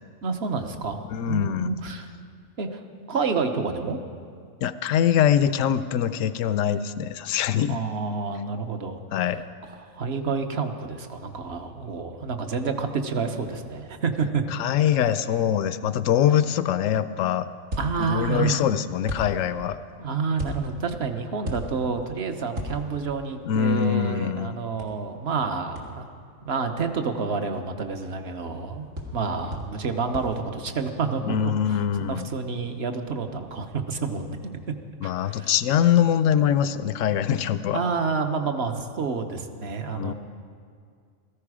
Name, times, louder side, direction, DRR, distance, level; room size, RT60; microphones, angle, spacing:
voice 1, 0.2-1.0 1.3-2.1 2.6-2.8 3.1-4.0 7.7-9.0 9.8-14.4 17.8-18.6 20.0-26.1 26.4-28.9 29.1-34.6 35.0-35.5 37.7-40.1, right 5 dB, 55° right, 6 dB, 1.1 m, -29 dB
voice 2, 1.1-1.7 4.6-7.8 9.1-9.4 14.5-17.5 18.0-19.8 23.5-24.5 31.2-32.3 35.0-37.8 39.9-40.1, left 9 dB, 75° left, 13 dB, 0.9 m, -23 dB
sound 1, 17.7-18.4 19.1-19.7 20.4-20.9 21.4-22.1 22.5-23.2 24.8-24.9 25.7-25.8 29.0-29.2 29.5-29.9 30.1-30.4, left 1 dB, 75° right, 2.2 m, -34 dB
16.5 x 14.0 x 4.9 m, 2.2 s
omnidirectional pair, 1.4 m